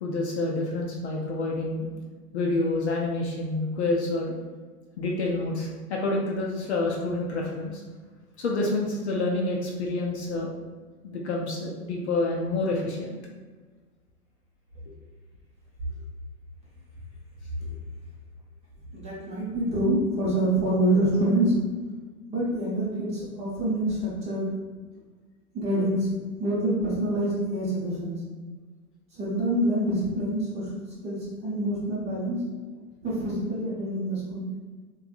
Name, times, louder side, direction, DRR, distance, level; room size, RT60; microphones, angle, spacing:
voice 1, 0.0-1.9 2.3-4.3 5.0-7.8 8.4-10.5 11.0-13.2, left 2 dB, 50° left, -2 dB, 0.5 m, -28 dB
voice 2, 18.9-21.6 22.3-24.5 25.5-26.1 26.4-28.2 29.1-32.4 33.0-34.5, right 1 dB, 15° right, -8 dB, 0.8 m, -26 dB
3.4 x 2.3 x 2.3 m, 1.4 s
hypercardioid pair, 125°, 45 cm